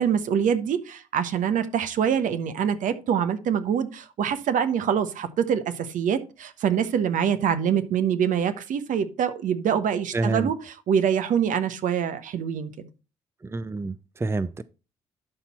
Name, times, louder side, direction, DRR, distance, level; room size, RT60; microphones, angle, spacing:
voice 1, 0.0-12.9, right 8 dB, 65° right, 1.1 m, -25 dB
voice 2, 10.1-10.5 13.4-14.6, right 3 dB, 15° right, 0.6 m, -28 dB
11.5 x 4.4 x 4.3 m
hypercardioid pair, 50°, 15 cm